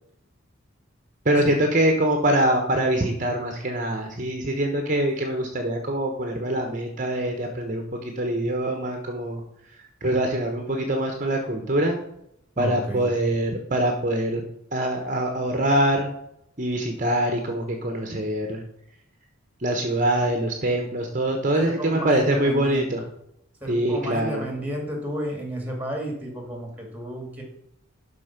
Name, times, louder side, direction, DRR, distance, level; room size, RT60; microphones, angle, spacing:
voice 1, 1.2-9.4 10.0-12.0 12.6-14.4 14.7-16.1 16.6-18.6 19.6-23.0 23.7-24.4, right 1 dB, 35° right, 4 dB, 1.1 m, -24 dB
voice 2, 12.6-13.3 21.6-22.9 23.6-27.4, equal, 10° right, 1 dB, 2.2 m, -32 dB
12.0 x 4.4 x 5.9 m, 0.76 s
head